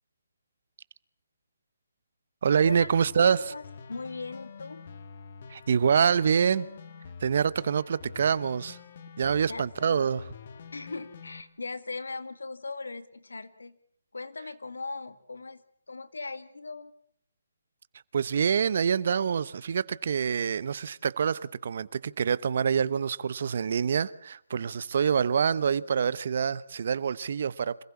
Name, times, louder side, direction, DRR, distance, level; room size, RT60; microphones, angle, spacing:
voice 1, 2.4-3.4 5.5-6.7 7.2-8.8 9.2-10.3 18.1-27.8, right 7 dB, 55° right, 1.0 m, -26 dB
sound 1, 2.7-11.4, left 5 dB, 50° left, 1.8 m, -47 dB
voice 2, 3.2-3.6 3.9-4.8 9.5-10.1 10.7-13.8 14.1-16.9, left 3 dB, 85° left, 2.1 m, -39 dB
26.5 x 15.5 x 8.5 m
hypercardioid pair, 155°, 0 cm